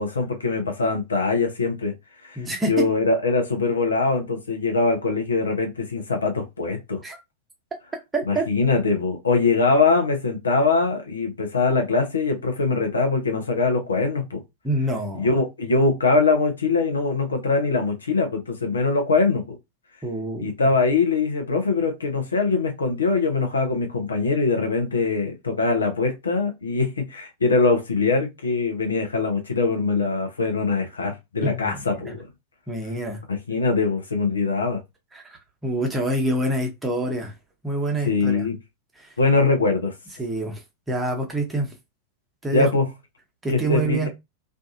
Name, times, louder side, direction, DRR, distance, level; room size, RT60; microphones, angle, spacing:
voice 1, 0.0-1.9 2.2-2.4 2.7-7.0 8.3-14.4 15.1-19.6 20.4-32.3 33.3-34.8 38.0-38.6 39.2-39.9 42.5-42.9 43.5-44.1, left 3 dB, 75° left, 0.7 m, -22 dB
voice 2, 2.4-2.9 7.0-7.2 8.1-8.4 14.6-15.3 20.0-20.5 31.4-32.1 32.7-33.2 35.1-35.2 35.6-37.3 37.6-38.5 39.0-39.1 40.2-40.6 40.9-41.7 42.4-42.7 43.4-44.1, right 1 dB, 10° right, 0.8 m, -26 dB
2.5 x 2.4 x 2.5 m
figure-of-eight pair, 90°, 0 cm